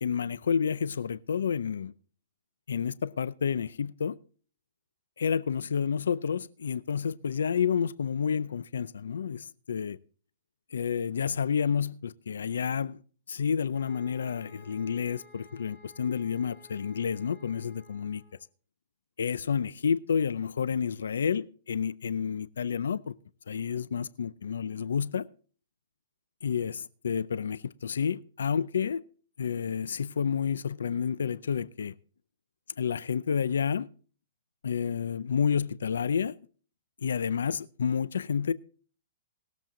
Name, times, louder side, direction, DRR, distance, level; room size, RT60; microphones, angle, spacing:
voice 1, 0.0-1.9 2.7-4.2 5.2-10.0 10.7-13.0 13.3-18.2 19.2-23.1 23.5-25.3 26.4-29.0 29.4-31.9 32.8-33.9 34.6-36.3 37.0-38.5, left 7 dB, 90° left, 0.5 m, -30 dB
sound 1, 13.7-18.4, left 1 dB, ahead, 2.4 m, -56 dB
20.0 x 7.5 x 3.8 m
hypercardioid pair, 155°, 0 cm